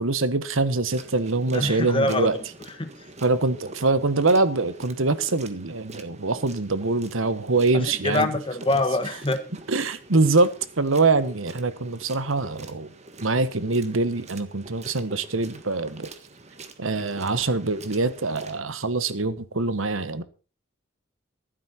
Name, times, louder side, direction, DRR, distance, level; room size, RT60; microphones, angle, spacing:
voice 1, 0.0-2.4 3.2-8.3 8.7-8.8 9.7-10.5 10.8-12.9 13.2-16.1 16.8-20.2, right 3 dB, 85° right, 1.3 m, -24 dB
sound 1, 0.9-18.6, right 3 dB, 35° right, 1.6 m, -46 dB
voice 2, 1.5-2.3 2.8-2.9 7.7-9.4, left 2 dB, 25° left, 1.6 m, -25 dB
15.0 x 12.0 x 4.4 m
head